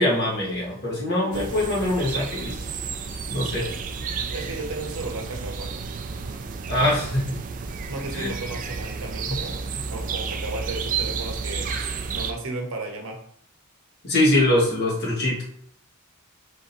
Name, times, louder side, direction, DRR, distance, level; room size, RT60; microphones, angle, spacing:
voice 1, 0.0-2.5 3.3-3.6 6.7-7.3 8.1-8.3 9.3-9.4 14.0-15.4, left 1 dB, 50° left, -5 dB, 1.5 m, -23 dB
sound 1, 1.3-12.3, right 5 dB, 35° right, 0.3 m, -31 dB
voice 2, 3.6-5.7 7.9-11.7 12.1-13.2, right 2 dB, 65° right, 2 dB, 0.9 m, -34 dB
3.5 x 2.7 x 4.2 m, 0.63 s
head